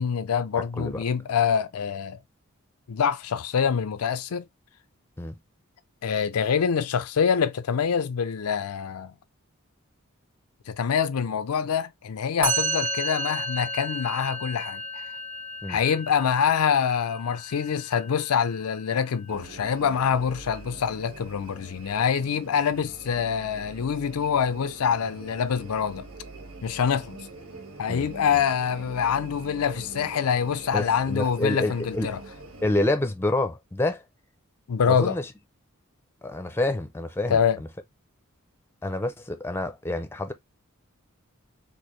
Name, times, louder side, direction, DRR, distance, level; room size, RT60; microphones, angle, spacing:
voice 1, 0.0-2.2 2.9-4.4 6.0-9.1 10.7-15.1 15.7-26.1 26.6-27.2 27.8-32.2 34.7-35.2 37.3-37.6, left 7 dB, 85° left, 0.4 m, -25 dB
Musical instrument, 12.4-19.7, right 1 dB, 45° right, 2.1 m, -33 dB
sound 1, 19.3-32.9, right 2 dB, 85° right, 1.3 m, -44 dB
voice 2, 30.7-32.1 32.6-34.0 34.9-35.2 36.2-37.4 38.8-40.3, left 2 dB, 10° left, 0.5 m, -27 dB
4.5 x 2.6 x 3.0 m
head